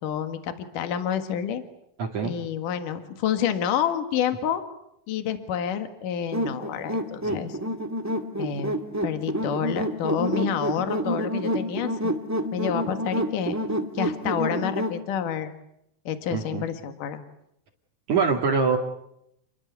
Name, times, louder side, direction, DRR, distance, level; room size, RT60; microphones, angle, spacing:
voice 1, 0.0-1.6 2.2-4.7 5.1-7.6 8.4-8.8 9.0-12.2 12.5-13.6 13.9-15.5 16.1-17.2, left 8 dB, 70° left, 8 dB, 3.3 m, -28 dB
voice 2, 2.0-2.3 7.2-7.5 16.3-16.6 18.1-18.8, right 5 dB, 60° right, -1 dB, 3.7 m, -24 dB
sound 1, 6.3-15.0, equal, 5° right, 1.4 m, -28 dB
29.5 x 22.5 x 8.3 m, 0.79 s
omnidirectional pair, 4.0 m